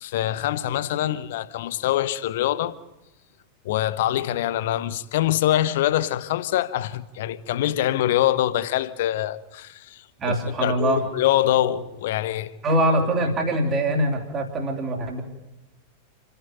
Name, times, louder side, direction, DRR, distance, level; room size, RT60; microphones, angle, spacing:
voice 1, 0.0-2.7 3.6-10.0 10.3-10.4 10.6-12.5, left 13 dB, 55° left, 0.9 m, -24 dB
voice 2, 10.2-11.0 12.6-15.2, right 1 dB, 25° right, 3.4 m, -23 dB
28.5 x 11.5 x 9.3 m
figure-of-eight pair, 90°, 0 cm